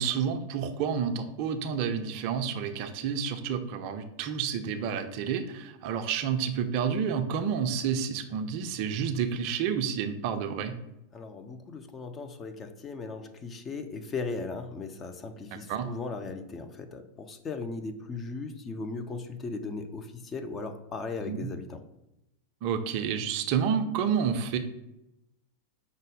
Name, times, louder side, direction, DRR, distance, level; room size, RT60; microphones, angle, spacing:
voice 1, 0.0-10.7 15.5-15.9 21.2-21.5 22.6-24.6, right 7 dB, 45° right, 8 dB, 0.4 m, -30 dB
voice 2, 11.1-21.8, left 4 dB, 25° left, 7 dB, 0.4 m, -37 dB
5.3 x 2.0 x 4.8 m, 0.91 s
figure-of-eight pair, 90°, 0 cm